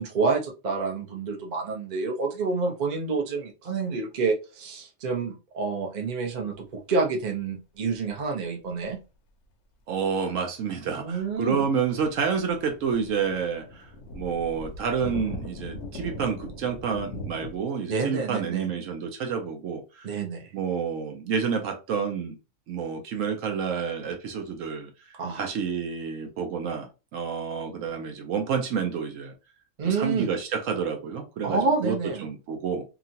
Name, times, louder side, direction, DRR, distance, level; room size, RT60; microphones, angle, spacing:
voice 1, 0.0-9.0 11.0-11.7 17.9-18.7 20.0-20.5 25.1-25.5 29.8-30.3 31.4-32.3, right 4 dB, 45° right, 0.6 m, -28 dB
sound 1, 8.8-8.9 10.8-17.6, left 1 dB, 60° left, 0.8 m, -40 dB
voice 2, 9.9-20.1 20.5-22.4 22.7-24.9 25.3-29.3 29.8-32.8, right 6 dB, 70° right, 0.9 m, -29 dB
2.9 x 2.4 x 2.7 m
omnidirectional pair, 1.5 m